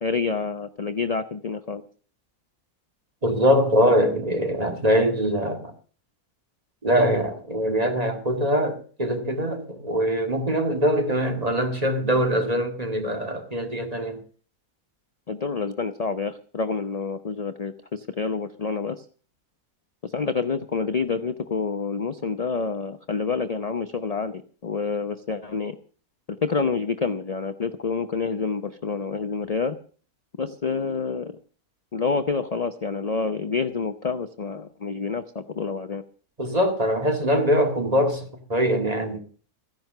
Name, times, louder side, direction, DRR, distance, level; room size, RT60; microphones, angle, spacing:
voice 1, 0.0-1.8 15.3-19.0 20.0-25.8 26.4-29.8 30.4-31.3 31.9-36.0, left 4 dB, 45° left, 0.5 m, -28 dB
voice 2, 3.2-5.7 6.8-14.2 36.4-39.2, equal, 25° right, 2.0 m, -23 dB
15.0 x 10.5 x 6.6 m
omnidirectional pair, 1.6 m